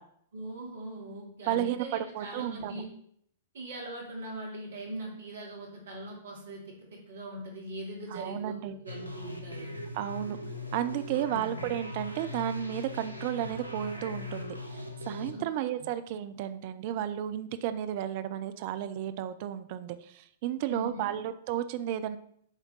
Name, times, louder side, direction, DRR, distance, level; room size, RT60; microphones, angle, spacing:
voice 1, 0.3-2.9 3.5-9.7 11.3-11.6 15.3-15.4 20.6-21.1, right 1 dB, 65° right, -1 dB, 2.4 m, -41 dB
voice 2, 1.5-2.8 8.1-8.7 9.9-10.4 10.7-22.2, right 11 dB, 45° right, 11 dB, 0.5 m, -33 dB
sound 1, 8.9-15.3, left 2 dB, 90° left, 1.0 m, -40 dB
8.2 x 3.6 x 5.3 m, 0.66 s
figure-of-eight pair, 105°, 0 cm